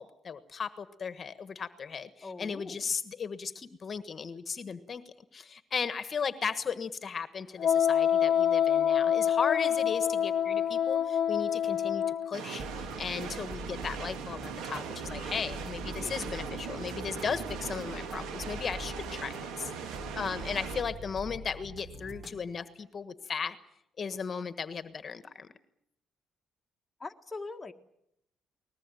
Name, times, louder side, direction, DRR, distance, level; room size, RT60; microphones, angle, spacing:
voice 1, 0.0-5.0 5.3-23.6 24.0-25.5, left 6 dB, 45° left, 12 dB, 1.4 m, -36 dB
voice 2, 2.2-2.9 15.9-16.1 27.0-27.7, left 3 dB, 20° left, 4 dB, 1.6 m, -42 dB
Wind instrument woodwind instrument, 7.6-12.3, left 9 dB, 60° left, 0.9 m, -26 dB
sound 1, 12.3-20.8, right 6 dB, 90° right, 2.4 m, -40 dB
sound 2, 12.6-22.4, equal, 25° right, 5.2 m, -44 dB
22.0 x 20.0 x 9.2 m, 0.78 s
cardioid pair, 90°, 0 cm